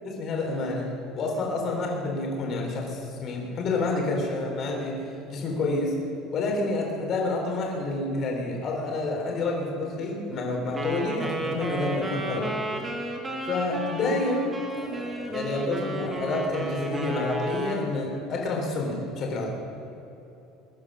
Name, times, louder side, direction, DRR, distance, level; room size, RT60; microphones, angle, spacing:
voice 1, 0.0-5.0 5.3-5.9 6.3-12.5 13.4-19.5, left 2 dB, 35° left, 0 dB, 3.9 m, -29 dB
Wind instrument woodwind instrument, 10.7-17.9, right 1 dB, 15° right, 1.8 m, -32 dB
22.0 x 9.7 x 6.3 m, 3.0 s
cardioid pair, 160°, 0 cm